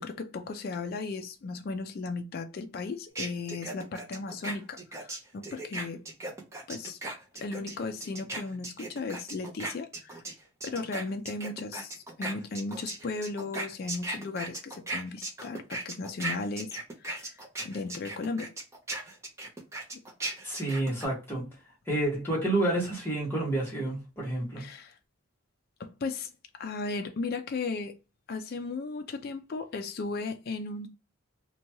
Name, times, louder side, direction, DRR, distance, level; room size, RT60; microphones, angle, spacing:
voice 1, 0.0-6.0 6.7-7.0 7.4-10.2 10.6-16.7 17.0-18.5 24.6-25.0 25.8-26.3 26.6-28.0 28.3-30.9, left 3 dB, 45° left, 0.3 m, -36 dB
sound 1, 3.2-10.3 10.6-21.1, right 2 dB, 15° right, 0.5 m, -37 dB
voice 2, 20.4-21.5 21.9-24.6, right 2 dB, 10° left, 1.1 m, -29 dB
2.8 x 2.2 x 2.9 m
head